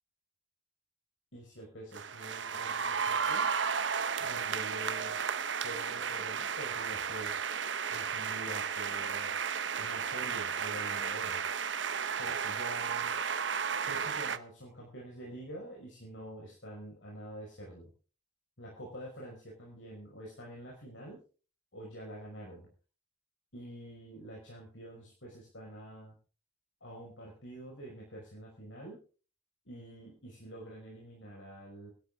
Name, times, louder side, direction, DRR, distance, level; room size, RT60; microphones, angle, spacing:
voice 1, 1.3-3.6 4.2-5.2 5.6-7.4 7.9-9.3 9.8-11.4 12.2-13.2 13.9-17.9 18.6-21.2 21.7-22.7 23.5-26.2 26.8-29.0 29.7-31.9, right 1 dB, 70° left, -2 dB, 5.4 m, -46 dB
sound 1, 1.9-14.4, right 6 dB, 65° right, 1.0 m, -33 dB
22.0 x 12.5 x 3.6 m, 0.38 s
head